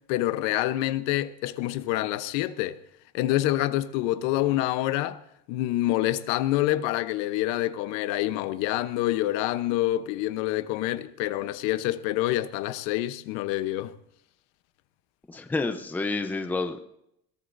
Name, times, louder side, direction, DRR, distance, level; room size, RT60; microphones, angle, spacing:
voice 1, 0.1-2.8 3.1-5.2 5.5-13.9, left 15 dB, 70° left, 1.0 m, -27 dB
voice 2, 15.3-16.9, left 3 dB, 5° left, 0.7 m, -29 dB
21.5 x 17.5 x 2.7 m
cardioid pair, 180°, 31 cm